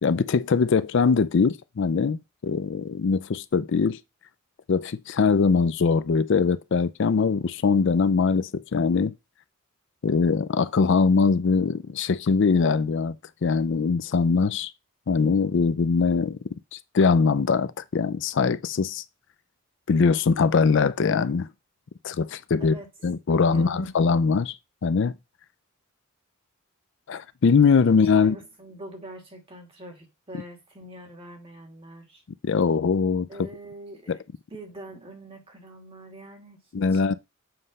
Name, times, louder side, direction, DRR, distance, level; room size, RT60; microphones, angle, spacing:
voice 1, 0.0-4.0 4.7-9.1 10.0-13.1 13.4-14.7 15.1-16.4 16.7-19.0 19.9-21.5 22.0-22.8 23.0-24.6 24.8-25.1 27.1-28.4 32.4-33.3 34.1-34.2 36.7-37.1, left 5 dB, 60° left, 0.4 m, -22 dB
voice 2, 23.4-23.9 27.9-32.2 33.3-34.2 34.5-37.0, right 1 dB, 25° right, 2.3 m, -44 dB
7.7 x 3.2 x 5.4 m
head